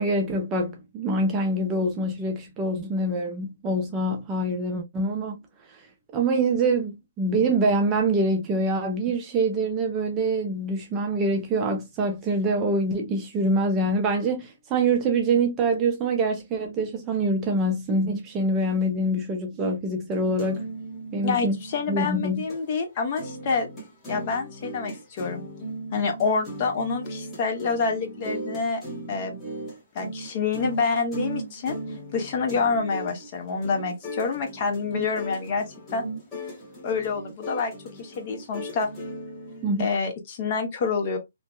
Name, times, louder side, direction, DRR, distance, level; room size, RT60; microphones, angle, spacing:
voice 1, 0.0-5.4 6.1-20.8 21.1-21.5 21.9-22.4 39.6-39.8, right 2 dB, 15° right, 0.4 m, -25 dB
sound 1, 20.1-22.6 23.0-39.8, right 1 dB, 15° left, 1.0 m, -38 dB
voice 2, 21.2-23.7 24.1-25.4 25.9-28.8 29.1-29.4 29.9-31.8 32.1-36.0 36.8-37.7 38.0-38.9 39.8-41.2, left 4 dB, 35° left, 0.7 m, -27 dB
2.6 x 2.1 x 2.2 m
hypercardioid pair, 160°, 0 cm